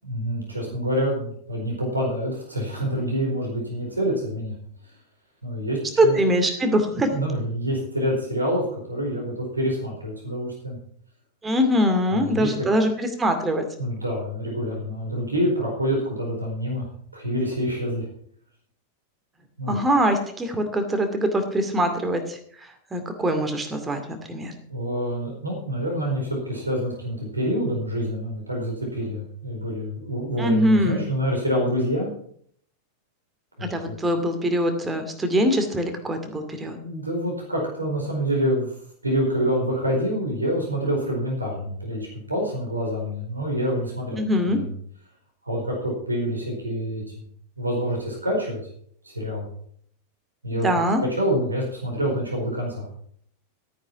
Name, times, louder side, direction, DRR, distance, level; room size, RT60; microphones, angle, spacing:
voice 1, 0.0-4.5 5.4-6.2 7.1-10.8 12.1-12.5 13.8-16.9 17.1-18.0 19.6-19.8 24.7-32.1 33.6-34.0 36.8-38.7 39.0-44.2 44.4-44.7 45.4-47.2 47.6-48.6 49.0-49.5 50.4-50.7 51.1-52.9, equal, 80° right, -1 dB, 4.6 m, -27 dB
voice 2, 6.0-7.1 11.4-13.6 19.7-22.4 22.9-24.5 30.4-31.0 33.7-36.8 44.1-44.6 50.6-51.0, equal, 15° right, 6 dB, 2.3 m, -23 dB
13.5 x 9.4 x 5.9 m, 0.62 s
figure-of-eight pair, 90°, 0 cm